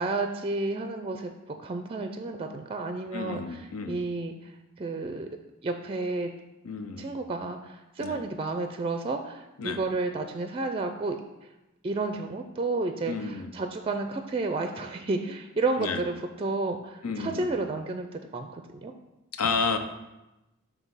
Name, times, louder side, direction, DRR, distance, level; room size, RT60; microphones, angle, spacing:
voice 1, 0.0-5.3 5.6-6.3 7.0-11.2 11.4-11.5 11.8-18.9, right 3 dB, 25° right, 6 dB, 0.4 m, -31 dB
voice 2, 3.1-4.0 6.6-7.1 8.0-8.2 9.6-9.8 13.1-13.5 15.8-16.0 17.0-17.5 19.3-19.8, left 4 dB, 85° left, 7 dB, 0.7 m, -31 dB
7.2 x 3.4 x 5.5 m, 0.98 s
head